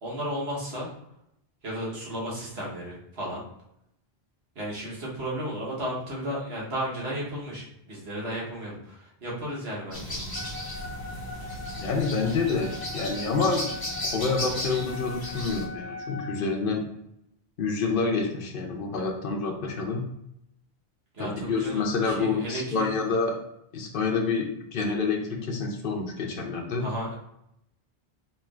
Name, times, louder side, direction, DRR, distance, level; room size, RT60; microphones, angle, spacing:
voice 1, 0.0-0.9 1.6-3.4 4.5-10.2 21.1-22.9 26.8-27.2, equal, 75° right, -5 dB, 1.4 m, -34 dB
sound 1, 9.9-15.6, left 1 dB, 25° left, 0.8 m, -35 dB
Wind instrument woodwind instrument, 10.3-16.4, left 3 dB, 20° right, 0.5 m, -41 dB
voice 2, 11.8-13.7 14.0-16.8 17.6-20.0 21.2-23.4 23.7-26.9, left 4 dB, 60° left, 1 dB, 0.9 m, -28 dB
4.4 x 2.9 x 2.4 m, 0.79 s
omnidirectional pair, 1.1 m